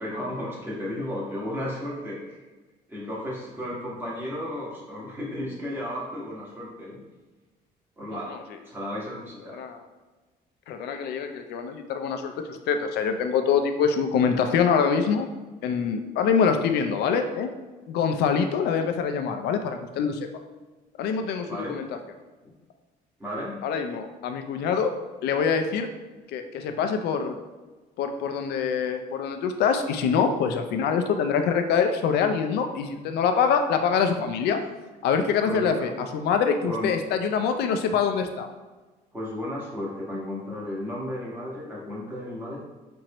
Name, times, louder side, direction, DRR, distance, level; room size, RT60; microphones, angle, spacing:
voice 1, 0.0-2.4 2.9-7.0 8.0-8.3 8.6-9.6 21.5-21.8 23.2-23.6 34.0-34.6 35.4-35.9 36.7-36.9 39.1-42.6, left 1 dB, 10° right, -6 dB, 1.4 m, -34 dB
voice 2, 10.7-15.3 15.6-17.5 17.9-20.2 21.0-21.9 23.6-24.9 25.2-25.9 26.3-27.3 28.0-34.6 35.0-38.5, left 6 dB, 75° left, 6 dB, 0.5 m, -25 dB
4.4 x 2.7 x 3.0 m, 1.3 s
cardioid pair, 110°, 17 cm